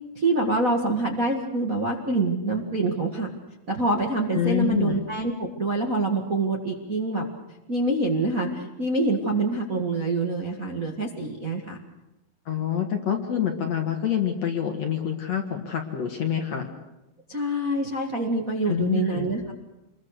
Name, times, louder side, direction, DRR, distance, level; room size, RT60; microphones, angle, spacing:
voice 1, 0.1-3.3 3.7-7.3 7.7-11.8 17.3-19.5, right 2 dB, 35° right, 0 dB, 1.4 m, -26 dB
voice 2, 4.3-5.0 12.5-16.7 18.7-19.3, left 9 dB, 55° left, 4 dB, 2.3 m, -26 dB
27.0 x 22.0 x 6.6 m, 0.95 s
omnidirectional pair, 4.6 m